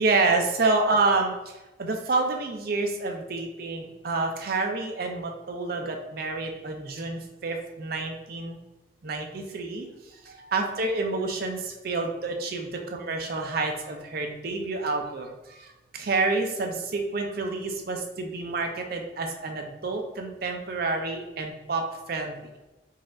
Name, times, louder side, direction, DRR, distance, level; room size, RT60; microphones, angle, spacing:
voice 1, 0.0-1.3 1.8-8.6 9.0-9.9 10.3-15.7 15.9-21.8 22.1-22.3, right 3 dB, 50° right, 3 dB, 0.5 m, -28 dB
4.0 x 2.5 x 3.7 m, 1.0 s
head